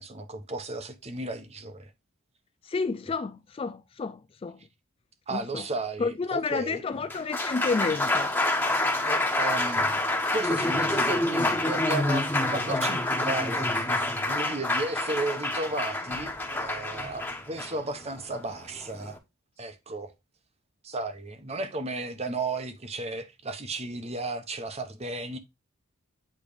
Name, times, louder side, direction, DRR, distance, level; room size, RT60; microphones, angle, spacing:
voice 1, 0.0-1.9 5.3-6.8 9.0-9.9 10.3-12.2 12.5-14.0 14.3-19.2 19.6-20.1 20.8-25.4, right 2 dB, 30° right, 1.0 m, -34 dB
voice 2, 2.6-4.6 5.3-5.6 6.0-8.3, left 4 dB, 25° left, 0.3 m, -30 dB
Applause, 6.9-19.2, left 2 dB, 10° left, 1.2 m, -27 dB
8.8 x 3.3 x 5.0 m
head